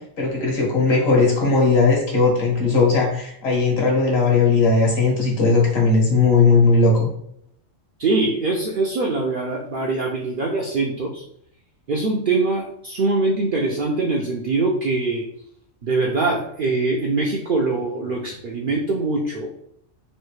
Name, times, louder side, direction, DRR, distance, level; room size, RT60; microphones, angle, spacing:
voice 1, 0.2-7.1, left 3 dB, 55° left, -1 dB, 1.2 m, -18 dB
voice 2, 8.0-11.2 11.9-15.3 15.8-19.5, right 3 dB, 60° right, -1 dB, 0.5 m, -23 dB
3.2 x 2.6 x 3.1 m, 0.70 s
omnidirectional pair, 1.3 m